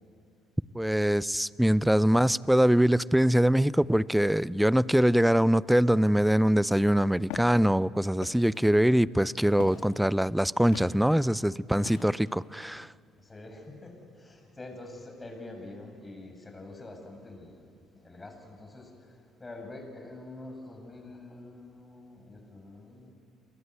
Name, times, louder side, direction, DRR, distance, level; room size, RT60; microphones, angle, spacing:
voice 1, 0.7-12.9, equal, 5° right, 0.6 m, -23 dB
Walk footsteps, 7.3-7.6 8.2-8.6 9.6-9.9 10.7-11.0 11.8-12.3, left 9 dB, 85° left, 2.4 m, -41 dB
voice 2, 13.2-23.1, left 2 dB, 20° left, 7.3 m, -46 dB
29.5 x 23.0 x 8.2 m
supercardioid pair, 80°, 0 cm